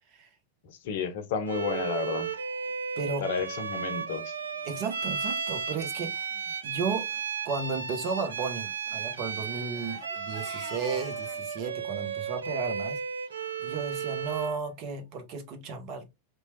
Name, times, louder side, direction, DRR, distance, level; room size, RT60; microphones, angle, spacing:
voice 1, 0.6-2.3 3.2-4.3, left 6 dB, 55° left, 0.6 m, -31 dB
Bowed string instrument, 1.5-14.6, right 6 dB, 70° right, 0.3 m, -34 dB
Crying sobbing, 4.6-4.8 5.5-5.6 5.8-6.0 6.3-6.5 7.0-7.2 8.4-11.4, right 1 dB, 10° right, 0.9 m, -49 dB
voice 2, 4.6-6.3 6.6-7.1 7.4-13.0 13.6-16.1, right 5 dB, 40° right, 0.8 m, -34 dB
2.9 x 2.2 x 3.0 m
figure-of-eight pair, 90°, 0 cm